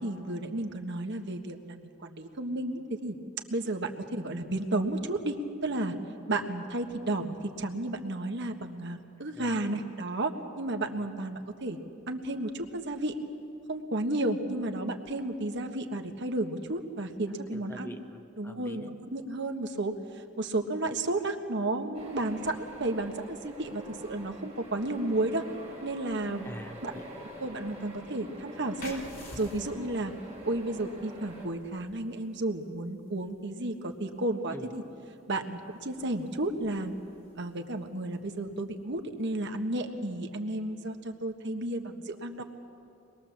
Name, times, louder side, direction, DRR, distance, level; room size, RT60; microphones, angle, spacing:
voice 1, 0.0-3.1 3.5-5.3 5.6-5.9 6.3-11.8 12.1-13.1 13.7-18.0 18.4-25.4 25.8-26.4 26.8-26.9 27.4-29.0 29.3-30.1 30.4-34.8 35.3-36.9 37.4-42.4, right 2 dB, 55° right, 5 dB, 1.4 m, -32 dB
voice 2, 17.5-18.9 26.4-27.0 34.5-34.7, equal, 10° left, 6 dB, 0.9 m, -45 dB
sound 1, 21.9-31.5, right 1 dB, 30° right, 5.5 m, -46 dB
sound 2, 28.8-40.1, left 1 dB, 45° left, 4.2 m, -53 dB
24.5 x 21.0 x 7.3 m, 2.6 s
head